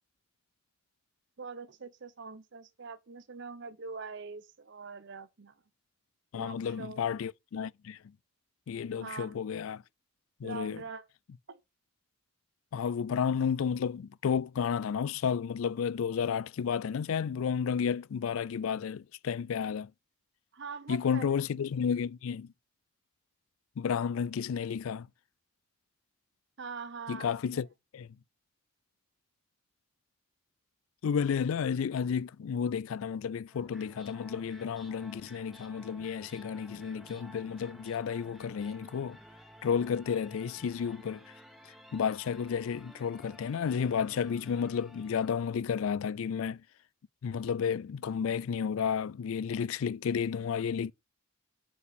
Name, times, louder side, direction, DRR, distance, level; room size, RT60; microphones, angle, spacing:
voice 1, 1.4-5.6 6.4-7.0 8.9-9.4 10.4-11.1 11.5-11.6 20.5-21.4 26.6-27.6, right 5 dB, 55° right, 0.7 m, -43 dB
voice 2, 6.3-8.0 8.7-9.8 10.4-10.8 12.7-19.9 20.9-22.5 23.8-25.1 27.1-27.7 27.9-28.1 31.0-39.2 39.6-41.2 41.9-46.6 47.2-50.9, left 7 dB, 75° left, 0.3 m, -32 dB
sound 1, 33.5-45.7, equal, ahead, 1.0 m, -54 dB
6.4 x 4.7 x 5.1 m
head